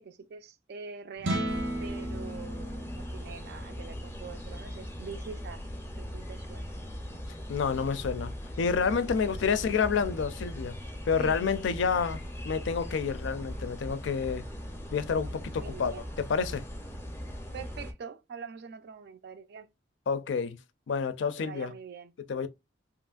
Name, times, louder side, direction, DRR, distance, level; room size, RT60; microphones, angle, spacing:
voice 1, 0.0-5.7 6.0-6.8 9.0-9.4 11.2-11.4 15.5-16.1 17.5-19.7 21.4-22.1, right 5 dB, 60° right, 0.3 m, -44 dB
sound 1, 1.2-7.5, right 1 dB, 85° right, 0.7 m, -38 dB
sound 2, 1.5-17.9, equal, 15° left, 0.5 m, -40 dB
voice 2, 7.5-10.8 11.1-14.4 14.9-16.6 20.1-20.6 20.9-21.7 22.3-22.5, left 6 dB, 75° left, 0.4 m, -29 dB
2.8 x 2.5 x 2.3 m
head